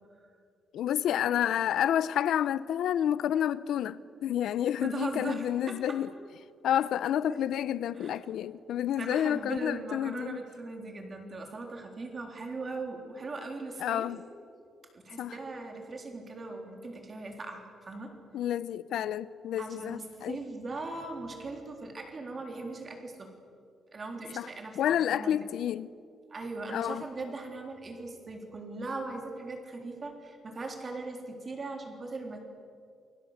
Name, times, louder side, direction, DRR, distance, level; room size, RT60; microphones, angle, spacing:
voice 1, 0.7-6.1 6.6-10.4 13.8-14.2 15.2-15.4 18.3-20.4 24.3-24.5 24.8-25.9 26.7-27.0, left 10 dB, 80° left, 0.7 m, -29 dB
voice 2, 4.8-6.0 7.3-7.4 7.9-8.2 9.0-14.1 14.9-18.1 19.6-23.3 23.9-24.8 25.1-25.5 26.3-32.4, right 3 dB, 25° right, 3.7 m, -39 dB
28.5 x 22.5 x 8.1 m
wide cardioid pair, 180°, 0 cm